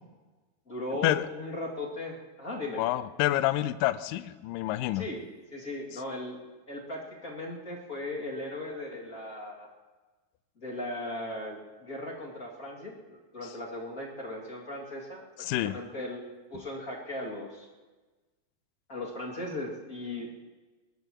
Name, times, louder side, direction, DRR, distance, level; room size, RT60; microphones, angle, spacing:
voice 1, 0.7-2.8 4.9-5.2 5.5-6.4 6.7-9.7 10.6-16.2 16.5-17.7 18.9-20.5, left 1 dB, 25° left, -4 dB, 2.1 m, -37 dB
voice 2, 2.7-5.0 15.4-15.8, left 15 dB, 85° left, 13 dB, 2.0 m, -28 dB
22.5 x 20.0 x 3.1 m, 1.2 s
omnidirectional pair, 4.5 m